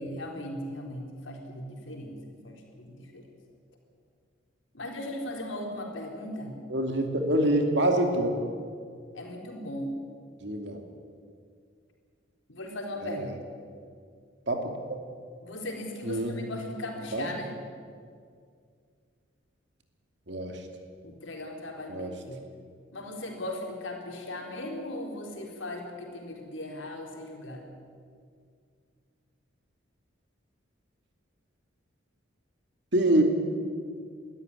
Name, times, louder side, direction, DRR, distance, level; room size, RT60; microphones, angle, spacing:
voice 1, 0.0-2.2 2.4-3.3 4.7-6.6 9.1-9.9 12.5-13.3 15.4-17.6 21.0-22.4 22.9-27.7, left 1 dB, 75° left, 1 dB, 4.1 m, -38 dB
voice 2, 6.7-8.3 10.4-10.8 13.0-13.3 14.5-15.0 16.0-16.3 17.1-17.3 20.3-20.6 21.9-22.1 32.9-33.2, right 1 dB, 60° right, 4 dB, 2.7 m, -26 dB
21.5 x 13.0 x 9.9 m, 2.2 s
head